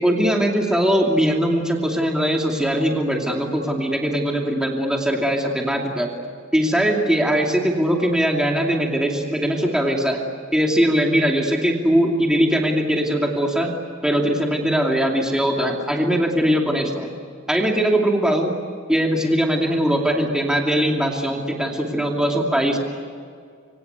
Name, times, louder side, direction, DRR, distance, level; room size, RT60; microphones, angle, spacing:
voice 1, 0.0-6.1 6.5-10.2 10.5-13.7 14.0-17.1 17.5-18.5 18.9-22.8, equal, 5° right, 0 dB, 2.7 m, -20 dB
27.0 x 25.0 x 8.3 m, 2.2 s
head